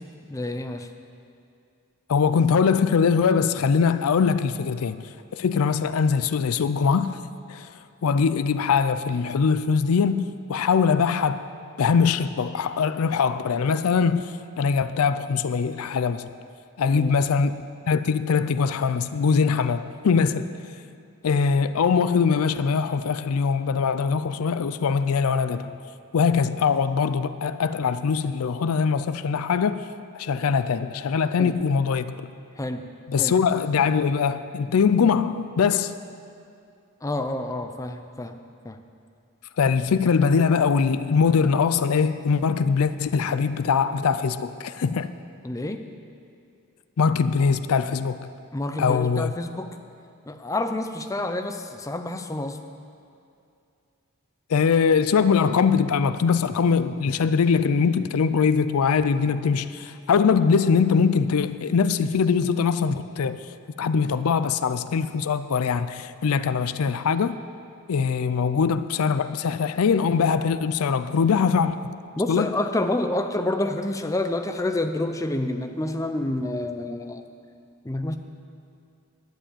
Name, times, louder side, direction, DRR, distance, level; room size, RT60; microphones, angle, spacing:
voice 1, 0.3-0.9 16.9-17.1 31.4-31.6 32.6-32.9 33.2-33.3 37.0-38.4 38.6-38.8 45.4-45.9 48.5-49.8 50.3-52.6 72.2-77.3 77.8-78.2, left 1 dB, 15° left, 0.5 m, -28 dB
voice 2, 2.1-5.0 5.3-7.2 7.5-7.7 8.0-11.5 11.8-16.3 16.8-20.5 21.2-25.7 26.1-29.8 30.1-32.3 33.1-35.9 39.6-45.1 47.0-48.3 48.8-49.3 54.5-63.4 63.8-67.4 67.9-71.8 72.3-72.5, left 5 dB, 75° left, 0.4 m, -22 dB
11.0 x 7.5 x 8.9 m
head